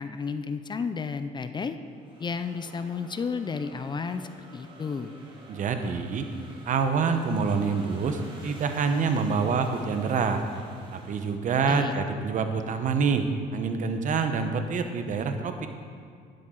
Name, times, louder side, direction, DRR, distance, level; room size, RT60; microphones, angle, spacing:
voice 1, 0.0-1.8 2.2-5.1 11.7-12.0, left 5 dB, 25° left, 10 dB, 0.5 m, -32 dB
sound 1, 1.7-11.3, right 1 dB, 30° right, 2.4 m, -49 dB
voice 2, 5.5-6.3 6.7-10.4 10.9-13.3 13.5-15.7, right 5 dB, 50° right, 7 dB, 0.9 m, -26 dB
12.0 x 10.0 x 3.8 m, 2.2 s
cardioid pair, 110°, 17 cm